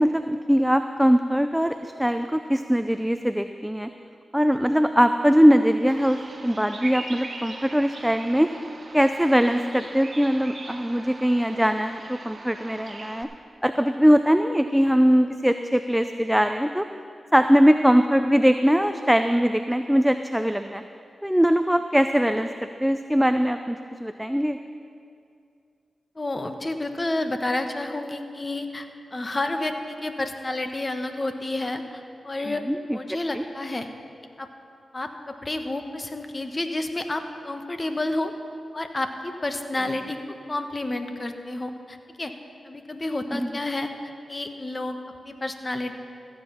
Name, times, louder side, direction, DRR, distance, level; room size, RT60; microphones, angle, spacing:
voice 1, 0.0-3.9 4.3-8.5 8.9-13.3 13.6-16.9 17.3-20.8 21.2-24.6 32.7-33.0 33.3-33.4 43.3-43.5, equal, 5° right, 8 dB, 0.5 m, -21 dB
Bird vocalization bird call bird song, 5.9-13.2, right 2 dB, 55° right, 1.2 m, -40 dB
voice 2, 26.1-32.6 32.9-33.9 34.4-34.5 34.9-38.3 38.7-40.2 40.5-42.3 42.6-43.9 44.3-45.0 45.2-45.9, left 2 dB, 35° left, 7 dB, 1.1 m, -30 dB
14.5 x 7.8 x 5.7 m, 2.4 s
cardioid pair, 45°, 0 cm